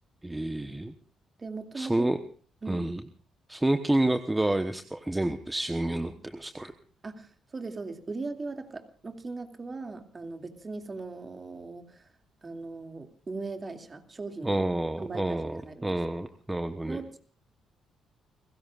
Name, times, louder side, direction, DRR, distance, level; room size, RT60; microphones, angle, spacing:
voice 1, 0.2-0.9 1.7-2.2 2.7-3.0 3.5-6.7 14.4-17.0, right 1 dB, 10° right, 8 dB, 1.1 m, -29 dB
voice 2, 1.4-2.1 2.6-2.9 7.0-12.1 12.4-14.6 15.0-15.9 16.9-17.2, right 3 dB, 30° right, 6 dB, 2.5 m, -39 dB
30.0 x 16.5 x 2.5 m, 0.43 s
cardioid pair, 90°, 0 cm